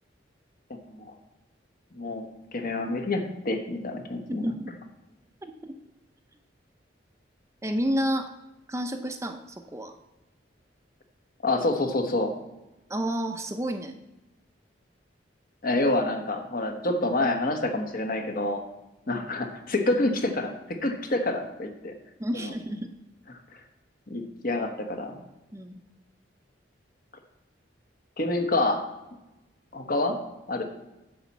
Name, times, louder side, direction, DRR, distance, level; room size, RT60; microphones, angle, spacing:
voice 1, 1.9-2.3 2.5-4.5 11.4-12.3 15.6-18.6 19.1-21.9 22.3-22.5 24.1-25.2 28.2-28.9 29.7-30.2 30.5-30.6, left 2 dB, 50° left, 5 dB, 1.2 m, -27 dB
voice 2, 4.3-4.7 5.4-5.7 7.6-8.3 8.7-9.9 12.9-13.9 22.2-22.8 25.5-25.8, equal, 15° right, 6 dB, 0.6 m, -30 dB
10.0 x 4.2 x 7.2 m, 1.0 s
head